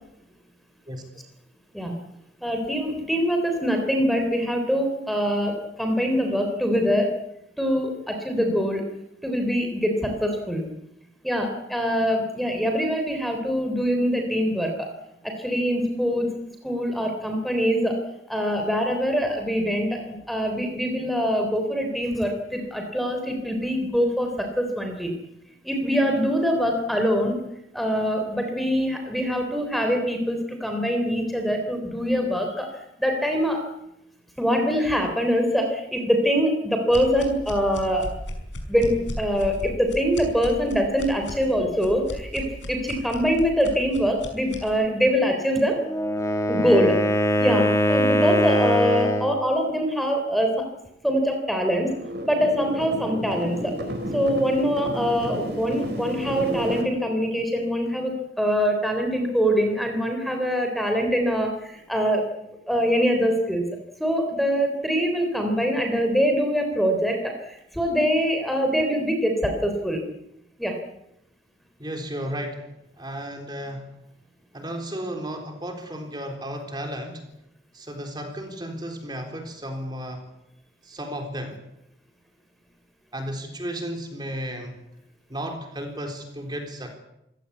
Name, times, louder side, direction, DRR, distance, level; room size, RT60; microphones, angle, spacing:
voice 1, 2.4-7.2 7.6-8.8 9.2-10.7 11.2-14.9 15.2-18.0 18.3-25.1 25.6-27.4 27.7-32.7 33.0-33.7 34.4-38.1 38.7-45.8 46.5-47.0 47.4-50.7 51.0-51.9 52.3-53.7 54.1-62.3 62.7-63.7 64.0-70.0 70.6-70.8, equal, ahead, 4 dB, 3.5 m, -24 dB
sound 1, 36.9-44.7, equal, 75° left, 5.6 m, -36 dB
Wind instrument woodwind instrument, 45.8-49.4, equal, 15° left, 1.7 m, -22 dB
sound 2, 51.8-56.8, equal, 60° right, 4.3 m, -32 dB
voice 2, 71.8-72.6 73.0-73.9 74.5-77.2 77.7-80.3 80.8-81.6 83.1-84.7 85.3-86.9, equal, 25° right, 3 dB, 3.8 m, -33 dB
26.5 x 17.5 x 8.4 m, 0.84 s
head